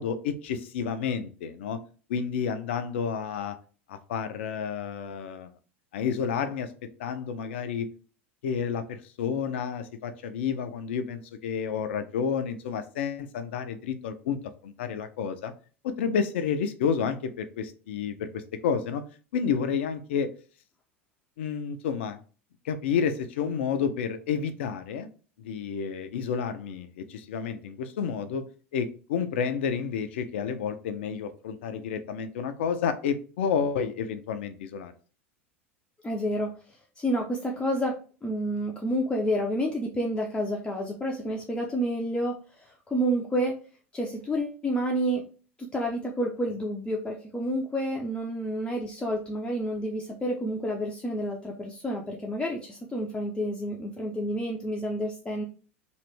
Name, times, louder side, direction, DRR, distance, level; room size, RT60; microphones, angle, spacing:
voice 1, 0.0-1.8 2.1-3.6 3.9-5.5 5.9-6.7 7.0-7.9 8.4-15.5 15.8-19.0 19.3-20.3 21.4-22.2 22.6-25.1 25.4-28.5 28.7-34.9, left 7 dB, 65° left, 9 dB, 0.5 m, -30 dB
voice 2, 36.0-38.0 38.2-43.6 43.9-45.2 45.6-55.4, equal, 15° left, -1 dB, 0.5 m, -29 dB
3.0 x 2.5 x 3.2 m, 0.38 s
figure-of-eight pair, 80°, 7 cm